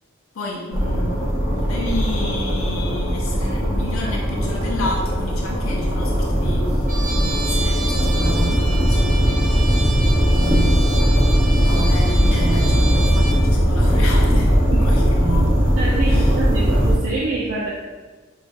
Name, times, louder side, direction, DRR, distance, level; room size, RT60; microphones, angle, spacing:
voice 1, 0.3-9.8 10.3-10.9 11.6-14.5 14.8-15.6 16.1-16.4, left 1 dB, 90° left, -1 dB, 0.5 m, -30 dB
sound 1, 0.7-17.0, equal, 15° right, 0.7 m, -18 dB
Trumpet, 6.9-13.4, right 2 dB, 40° right, 0.9 m, -31 dB
voice 2, 15.8-17.7, right 3 dB, 85° right, -7 dB, 0.6 m, -26 dB
5.3 x 2.4 x 2.5 m, 1.3 s
head